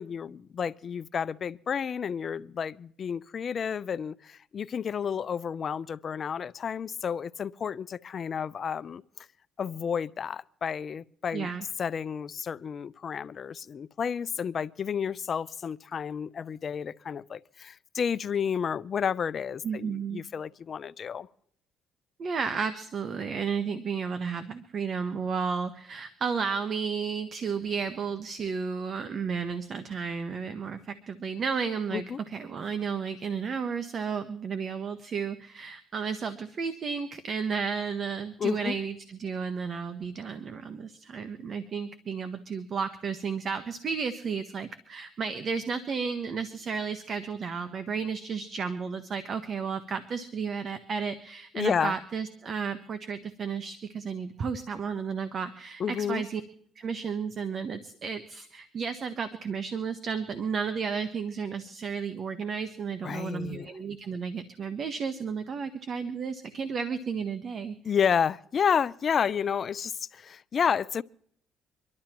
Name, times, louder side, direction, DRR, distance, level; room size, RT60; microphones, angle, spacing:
voice 1, 0.0-9.3 9.6-11.5 11.8-21.3 31.9-32.2 38.4-38.8 51.5-52.0 55.8-56.3 63.0-63.7 67.8-71.0, left 7 dB, 50° left, 0.4 m, -31 dB
voice 2, 11.3-11.6 19.6-20.2 22.2-56.4 56.8-67.8, right 6 dB, 50° right, 1.0 m, -33 dB
25.5 x 12.0 x 3.0 m
cardioid pair, 85°, 0 cm